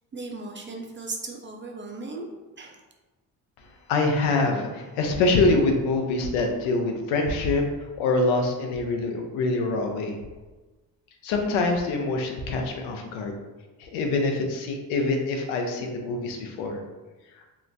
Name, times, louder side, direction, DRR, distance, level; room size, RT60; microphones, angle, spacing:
voice 1, 0.1-2.3 2.6-2.8, right 3 dB, 25° right, 1 dB, 0.4 m, -36 dB
voice 2, 3.9-7.6 8.0-10.2 11.2-13.4 13.8-16.8, left 3 dB, 80° left, 3 dB, 0.6 m, -25 dB
2.9 x 2.1 x 2.5 m, 1.2 s
hypercardioid pair, 45°, 48 cm